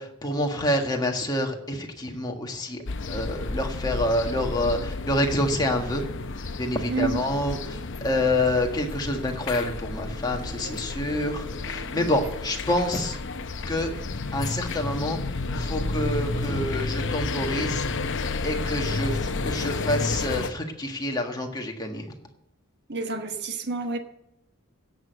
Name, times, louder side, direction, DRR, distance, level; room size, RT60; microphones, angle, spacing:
voice 1, 0.0-2.8 3.1-6.0 6.6-13.2 13.7-13.9 14.3-15.2 15.5-17.9 18.4-22.1, left 1 dB, 20° left, 2 dB, 1.6 m, -27 dB
sound 1, 2.9-20.5, left 3 dB, 55° left, 0.7 m, -31 dB
voice 2, 6.9-7.2 11.9-12.2 22.9-24.0, right 3 dB, 50° right, 6 dB, 1.2 m, -29 dB
sound 2, 9.8-14.2 14.5-14.6 15.3-17.5, right 1 dB, 15° right, 2.8 m, -45 dB
16.5 x 6.3 x 7.9 m, 0.81 s
head